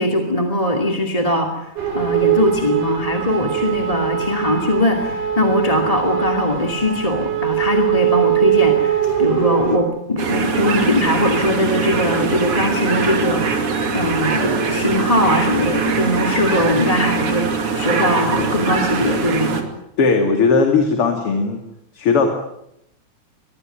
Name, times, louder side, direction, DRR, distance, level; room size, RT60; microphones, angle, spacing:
voice 1, 0.0-1.5 1.9-13.7 13.9-19.6, left 1 dB, 15° left, 3 dB, 2.2 m, -20 dB
sound 1, 1.8-9.8, right 10 dB, 80° right, 5.8 m, -21 dB
sound 2, 10.2-19.6, right 4 dB, 50° right, 3.4 m, -22 dB
voice 2, 20.0-21.6 21.9-22.3, left 4 dB, 50° left, 5 dB, 3.2 m, -17 dB
25.0 x 21.0 x 9.2 m, 0.78 s
omnidirectional pair, 3.5 m